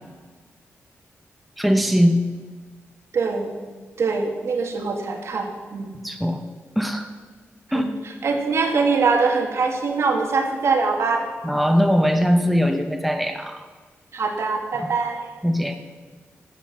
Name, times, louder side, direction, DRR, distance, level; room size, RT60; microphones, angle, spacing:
voice 1, 1.6-2.2 6.0-6.4 6.8-7.1 7.7-7.9 11.4-13.7 14.7-14.9 15.4-15.8, equal, ahead, 5 dB, 0.8 m, -20 dB
voice 2, 3.1-3.5 4.0-5.9 7.7-7.9 8.2-11.3 14.1-15.3, right 4 dB, 65° right, 3 dB, 2.0 m, -23 dB
11.5 x 7.8 x 7.3 m, 1.4 s
wide cardioid pair, 130°, 5 cm